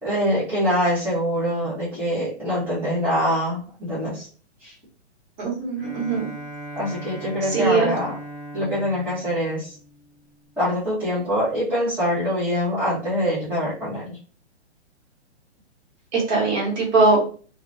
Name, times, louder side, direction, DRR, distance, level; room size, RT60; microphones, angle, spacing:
voice 1, 0.0-4.3 4.6-4.7 6.7-8.2 8.5-9.8 10.6-14.2, equal, 5° right, -11 dB, 0.7 m, -24 dB
voice 2, 5.4-6.3 7.4-7.9 16.1-17.2, right 3 dB, 40° right, -2 dB, 1.1 m, -21 dB
Bowed string instrument, 5.8-10.5, right 1 dB, 15° left, 0.3 m, -39 dB
2.3 x 2.1 x 2.5 m, 0.41 s
hypercardioid pair, 130°, 35 cm